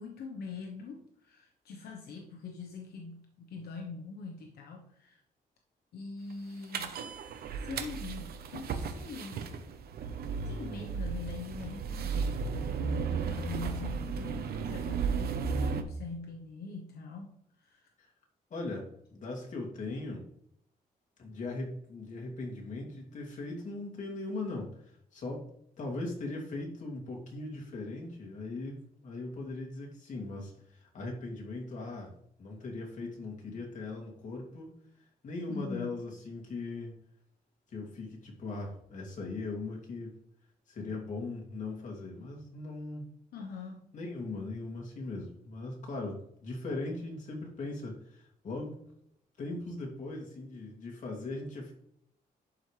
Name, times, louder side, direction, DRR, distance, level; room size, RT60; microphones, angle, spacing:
voice 1, 0.0-5.2 5.9-7.0 7.5-9.5 10.4-17.9 35.5-36.0 43.3-43.9, left 4 dB, 85° left, 2 dB, 1.0 m, -43 dB
sound 1, 6.7-15.8, right 5 dB, 80° right, 0.9 m, -34 dB
voice 2, 18.5-20.2 21.2-24.7 25.1-25.4 25.8-32.1 32.4-34.7 35.2-36.9 37.7-40.1 40.7-43.1 43.9-48.8 49.4-51.7, left 2 dB, 50° left, -1 dB, 2.6 m, -39 dB
11.0 x 5.2 x 3.3 m, 0.70 s
wide cardioid pair, 140°, 16 cm